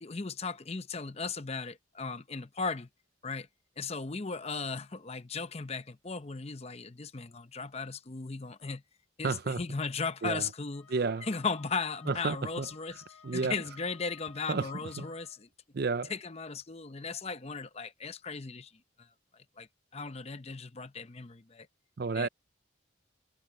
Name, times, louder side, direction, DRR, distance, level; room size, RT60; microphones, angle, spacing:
voice 1, 0.0-2.9 3.2-3.5 3.8-8.8 9.2-10.9 11.2-13.0 13.3-15.5 16.1-18.7 19.0-19.1 19.6-21.7 22.1-22.3, left 4 dB, 30° left, 0.7 m, -37 dB
voice 2, 9.2-9.6 10.2-10.5 10.9-11.3 12.1-12.7 13.2-13.6 14.5-14.7 15.0-15.1 15.7-16.1 22.0-22.3, right 4 dB, 50° right, 0.5 m, -31 dB
Wind instrument woodwind instrument, 10.7-15.4, left 6 dB, 85° left, 1.6 m, -56 dB
head